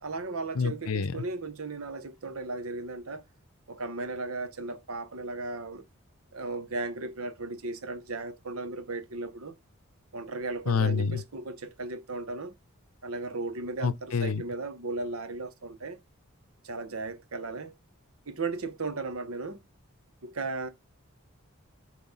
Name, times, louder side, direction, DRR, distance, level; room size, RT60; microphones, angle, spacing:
voice 1, 0.0-3.2 3.7-5.8 6.3-9.6 10.1-12.5 13.0-16.0 16.6-17.7 18.3-19.6 20.2-20.7, right 3 dB, 85° right, 1.0 m, -36 dB
voice 2, 0.5-1.1 10.7-11.2 13.8-14.4, left 5 dB, 85° left, 0.7 m, -27 dB
7.0 x 3.4 x 5.5 m
head